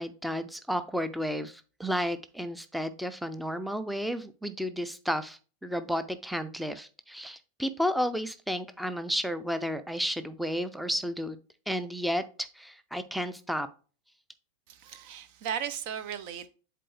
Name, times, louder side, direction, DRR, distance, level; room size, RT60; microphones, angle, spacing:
voice 1, 0.0-11.4 11.7-13.7, equal, ahead, 0.6 m, -32 dB
voice 2, 14.7-16.5, right 9 dB, 45° right, 0.6 m, -36 dB
7.6 x 4.0 x 3.3 m
figure-of-eight pair, 90°, 0 cm